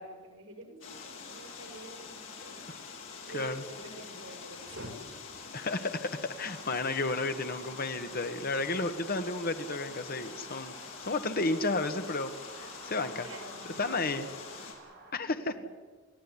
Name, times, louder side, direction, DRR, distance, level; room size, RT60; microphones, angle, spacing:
voice 1, 0.0-2.6 3.2-4.9 8.1-8.4 13.0-14.7 15.4-15.7, right 1 dB, 75° right, 3 dB, 6.4 m, -47 dB
sound 1, 0.8-14.7, left 5 dB, 70° left, 4.8 m, -46 dB
voice 2, 3.3-3.6 5.5-10.7 11.0-13.3 13.8-14.3 15.1-15.5, left 3 dB, 50° left, 8 dB, 1.6 m, -32 dB
sound 2, 6.3-15.1, right 2 dB, 55° right, 7.0 m, -52 dB
30.0 x 13.5 x 9.9 m, 1.5 s
head